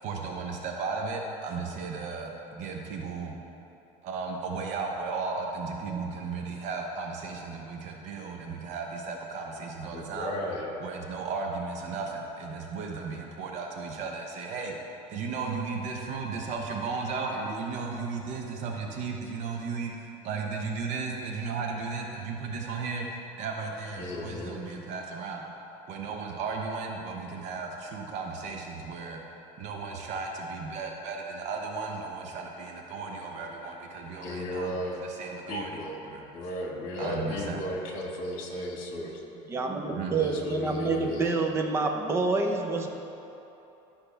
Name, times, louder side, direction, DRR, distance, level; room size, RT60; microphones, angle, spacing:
voice 1, 0.0-3.3 4.0-10.4 10.8-14.8 15.1-23.1 23.4-25.4 25.9-29.2 29.6-36.3 37.0-37.6 38.6-39.5 39.9-40.2, right 4 dB, 50° right, 1 dB, 0.9 m, -35 dB
voice 2, 9.9-10.7 24.0-24.6 34.2-35.0 35.5-35.9 36.3-39.2 40.2-41.4, left 1 dB, 60° left, 0 dB, 1.6 m, -35 dB
voice 3, 39.5-42.9, right 3 dB, 15° right, 2 dB, 0.6 m, -27 dB
11.5 x 5.8 x 3.4 m, 3.0 s
cardioid pair, 160°, 15 cm